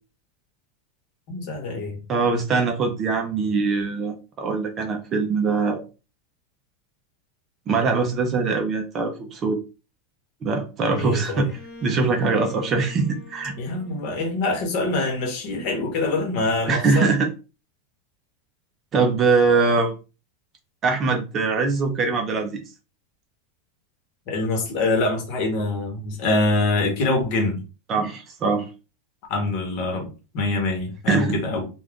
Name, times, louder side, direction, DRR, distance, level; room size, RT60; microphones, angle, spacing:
voice 1, 1.3-2.0 11.0-11.5 13.5-17.1 24.3-27.6 29.3-31.7, left 2 dB, 45° left, 1.0 m, -25 dB
voice 2, 2.1-5.8 7.7-9.6 10.4-11.5 11.8-13.5 16.7-17.3 18.9-20.0 20.8-22.6 27.9-28.7 31.1-31.4, right 4 dB, 25° right, 0.4 m, -22 dB
Bowed string instrument, 11.5-15.2, left 1 dB, 20° left, 0.9 m, -44 dB
2.4 x 2.3 x 3.5 m
supercardioid pair, 165°, 0 cm